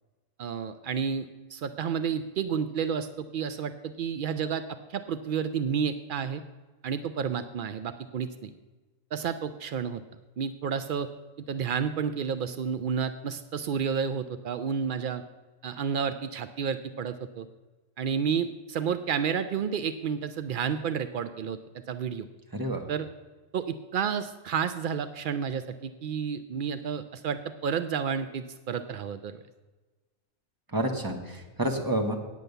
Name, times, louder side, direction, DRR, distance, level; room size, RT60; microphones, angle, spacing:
voice 1, 0.4-4.6 4.9-6.4 6.8-8.5 9.1-10.0 10.4-11.1 11.5-15.2 15.6-17.5 18.0-21.6 21.9-22.3 22.9-23.1 23.5-29.4, right 7 dB, 80° right, 11 dB, 0.4 m, -31 dB
voice 2, 30.7-32.2, right 1 dB, 15° right, 4 dB, 1.1 m, -29 dB
9.0 x 8.5 x 6.7 m, 1.2 s
omnidirectional pair, 1.4 m